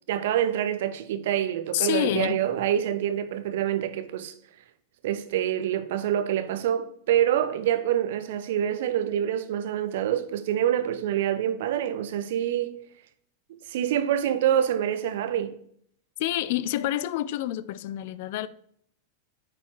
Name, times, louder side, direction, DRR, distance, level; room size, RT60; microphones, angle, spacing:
voice 1, 0.1-4.3 5.0-12.8 13.7-15.5, right 10 dB, 55° right, 0.6 m, -26 dB
voice 2, 1.7-2.4 16.2-18.5, left 13 dB, 50° left, 0.3 m, -28 dB
8.9 x 4.3 x 3.0 m
figure-of-eight pair, 90°, 0 cm